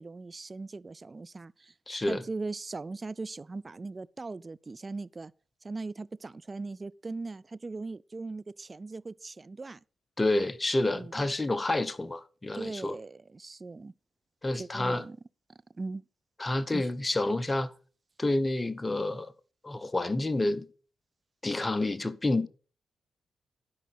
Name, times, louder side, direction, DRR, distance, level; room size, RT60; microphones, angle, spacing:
voice 1, 0.0-1.7 2.1-5.3 5.6-9.8 10.9-11.3 12.5-13.9 14.5-15.2 15.5-16.0 16.7-16.9, right 3 dB, 35° right, 0.5 m, -39 dB
voice 2, 1.9-2.2 10.2-13.0 14.4-15.0 16.4-17.7 18.2-19.3 19.6-20.7 21.4-22.5, left 2 dB, 25° left, 1.0 m, -29 dB
12.0 x 5.4 x 6.3 m
hypercardioid pair, 40°, 0 cm